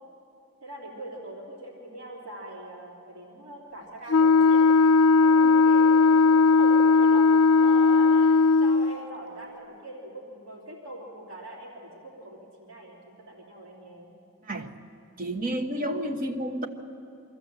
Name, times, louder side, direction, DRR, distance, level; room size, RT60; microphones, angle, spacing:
voice 1, 0.6-4.7 5.2-14.2, right 1 dB, 70° right, -2 dB, 3.2 m, -42 dB
Wind instrument woodwind instrument, 4.1-9.0, left 4 dB, 90° left, 0.4 m, -18 dB
voice 2, 14.4-14.7 15.2-16.7, right 1 dB, 40° right, 2 dB, 1.2 m, -30 dB
24.0 x 14.0 x 8.0 m, 2.7 s
head